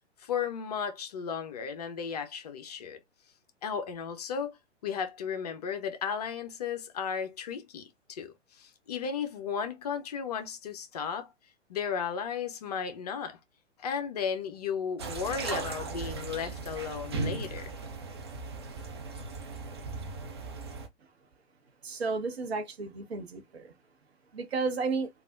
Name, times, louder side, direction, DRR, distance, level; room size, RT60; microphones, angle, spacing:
voice 1, 0.2-3.0 3.6-4.6 4.8-11.3 11.7-13.4 13.8-17.7, left 7 dB, 35° left, 0.5 m, -35 dB
sound 1, 15.0-20.9, right 3 dB, 25° right, 0.3 m, -37 dB
voice 2, 21.8-23.7 24.3-25.1, right 4 dB, 60° right, 0.9 m, -32 dB
3.3 x 2.3 x 2.4 m
figure-of-eight pair, 115°, 36 cm